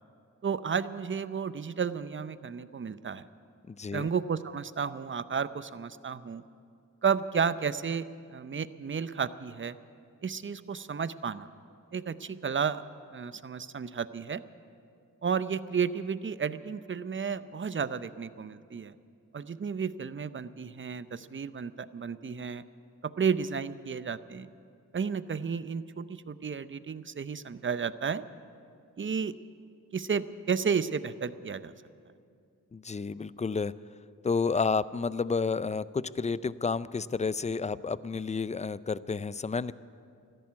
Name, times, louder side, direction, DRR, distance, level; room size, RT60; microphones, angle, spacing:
voice 1, 0.4-3.2 3.9-6.4 7.0-9.8 10.2-11.5 11.9-12.8 13.1-14.4 15.2-18.9 19.3-22.6 23.0-24.5 24.9-28.2 29.0-29.3 29.9-31.7, right 6 dB, 40° right, 14 dB, 0.6 m, -32 dB
voice 2, 3.7-4.1 32.7-33.7 34.2-39.7, left 4 dB, 20° left, 18 dB, 0.4 m, -30 dB
13.5 x 11.0 x 9.5 m, 2.4 s
cardioid pair, 50°, 32 cm